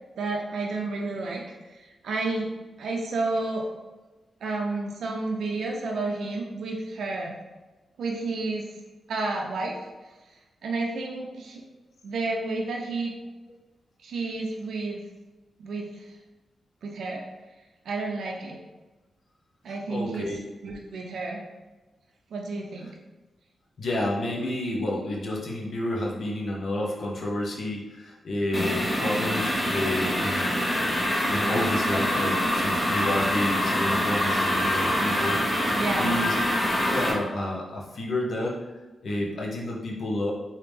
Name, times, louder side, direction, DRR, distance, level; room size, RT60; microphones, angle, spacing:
voice 1, 0.2-2.5 2.8-3.7 4.4-7.3 8.0-8.7 9.1-9.9 10.6-11.6 12.0-13.1 14.0-15.0 15.6-16.1 16.8-17.2 17.8-18.6 19.6-20.3 20.6-21.4 22.3-22.9 35.8-36.2, right 3 dB, 80° right, 0 dB, 0.4 m, -31 dB
voice 2, 19.9-20.4 23.8-30.6 31.3-36.4 36.8-38.6 39.0-40.3, left 1 dB, 65° left, -2 dB, 0.9 m, -30 dB
sound 1, 28.5-37.1, equal, 20° left, 1.2 m, -25 dB
3.4 x 2.8 x 3.2 m, 1.2 s
cardioid pair, 70°, 0 cm